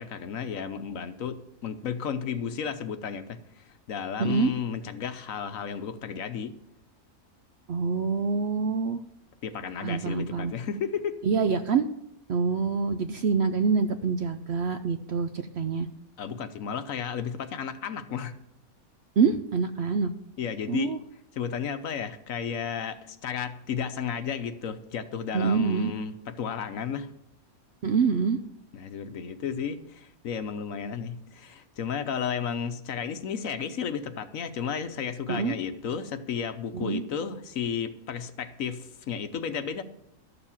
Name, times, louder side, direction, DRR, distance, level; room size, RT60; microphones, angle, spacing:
voice 1, 0.0-6.5 9.4-11.2 16.2-18.4 20.4-20.9 21.3-27.1 28.7-39.8, left 7 dB, 65° left, 10 dB, 1.2 m, -33 dB
voice 2, 4.2-4.5 7.7-9.0 9.8-10.5 11.2-11.9 12.3-15.9 19.2-20.1 20.7-21.0 25.3-25.9 27.8-28.4 35.3-35.6 36.7-37.0, right 5 dB, 60° right, 9 dB, 0.7 m, -26 dB
12.5 x 6.9 x 7.2 m, 0.78 s
omnidirectional pair, 1.5 m